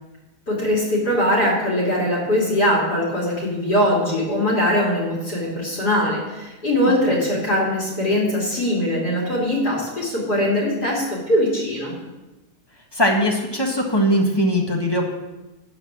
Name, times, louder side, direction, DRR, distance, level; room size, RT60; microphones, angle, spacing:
voice 1, 0.5-11.9, left 1 dB, 60° left, -3 dB, 3.6 m, -21 dB
voice 2, 12.9-15.1, equal, 15° left, 0 dB, 1.5 m, -20 dB
13.0 x 5.2 x 8.7 m, 1.1 s
omnidirectional pair, 2.0 m